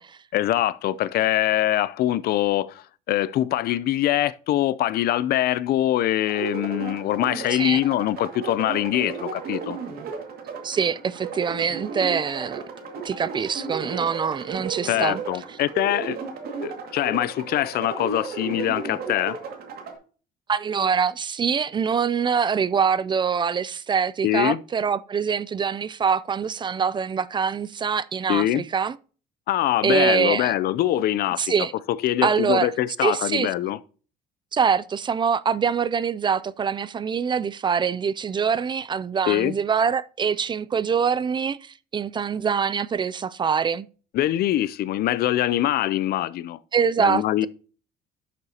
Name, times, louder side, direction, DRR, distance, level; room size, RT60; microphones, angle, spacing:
voice 1, 0.3-9.8 14.9-16.2 16.6-19.4 24.2-24.6 28.3-28.6 29.5-31.4 32.0-33.8 39.3-39.5 44.1-46.6 47.0-47.5, left 13 dB, 65° left, 0.5 m, -23 dB
sound 1, 6.3-19.9, right 5 dB, 65° right, 2.1 m, -34 dB
voice 2, 7.5-7.8 10.6-12.6 13.0-15.2 20.5-29.0 29.8-30.5 31.4-31.7 32.2-32.7 33.0-33.5 34.5-43.9 46.7-47.5, right 6 dB, 30° right, 0.3 m, -24 dB
12.0 x 6.7 x 2.8 m
cardioid pair, 110°, 17 cm